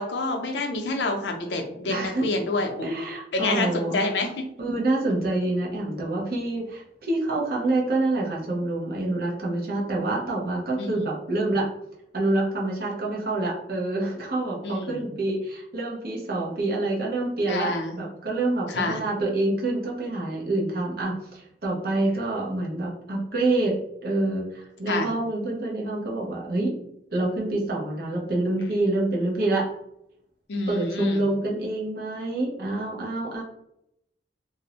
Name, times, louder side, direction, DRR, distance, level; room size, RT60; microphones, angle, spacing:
voice 1, 0.0-2.9 3.3-4.3 10.8-11.1 14.6-15.1 17.5-18.0 18.7-19.0 24.9-25.1 30.5-31.2, left 2 dB, 85° left, 3 dB, 0.5 m, -28 dB
voice 2, 1.9-2.3 2.8-4.0 4.6-11.7 12.1-23.8 24.0-26.7 27.1-29.7 30.7-33.4, right 2 dB, 55° right, -3 dB, 0.7 m, -27 dB
2.5 x 2.0 x 2.8 m, 0.79 s
head